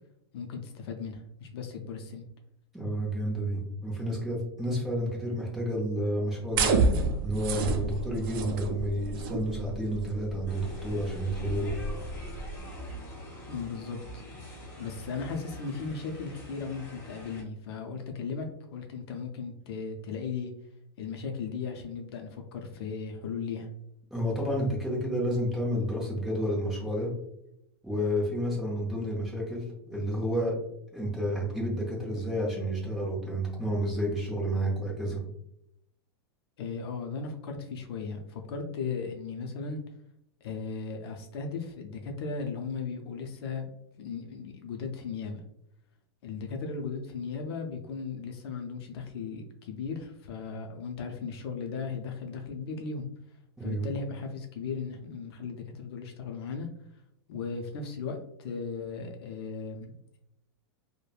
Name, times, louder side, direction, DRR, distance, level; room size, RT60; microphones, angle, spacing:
voice 1, 0.3-2.2 13.5-14.2 14.8-20.5 21.0-23.7 36.6-39.8 40.4-43.7 44.0-45.4 46.2-53.1 53.6-56.7 57.3-60.2, left 5 dB, 65° left, 3 dB, 0.5 m, -37 dB
voice 2, 2.7-6.7 7.2-11.7 24.1-27.1 27.8-30.5 30.9-35.2 53.6-53.9, equal, 5° right, -5 dB, 0.7 m, -30 dB
sound 1, 6.5-12.6, right 3 dB, 55° right, 0.4 m, -30 dB
sound 2, 10.5-17.4, left 1 dB, 15° left, 1.0 m, -44 dB
3.2 x 2.0 x 2.3 m, 0.79 s
supercardioid pair, 150°, 14 cm